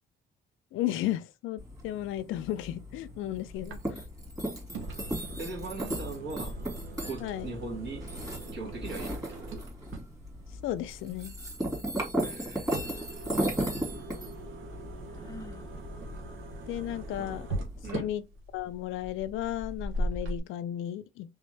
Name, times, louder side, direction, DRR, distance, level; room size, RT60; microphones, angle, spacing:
voice 1, 0.7-4.0 7.2-7.5 10.6-11.3 16.7-17.6 17.9-18.3 18.5-21.3, left 13 dB, 90° left, 0.5 m, -34 dB
sound 1, 1.6-18.0, right 1 dB, 15° right, 2.1 m, -37 dB
sound 2, 3.5-20.4, right 1 dB, 85° right, 1.1 m, -40 dB
voice 2, 5.4-6.6 7.0-8.0 8.5-9.6 12.1-13.0 17.2-17.4 17.8-18.1, right 3 dB, 60° right, 2.0 m, -40 dB
Sigh, 15.1-15.7, left 2 dB, 15° left, 0.6 m, -46 dB
3.5 x 3.3 x 3.3 m
cardioid pair, 90°, 20 cm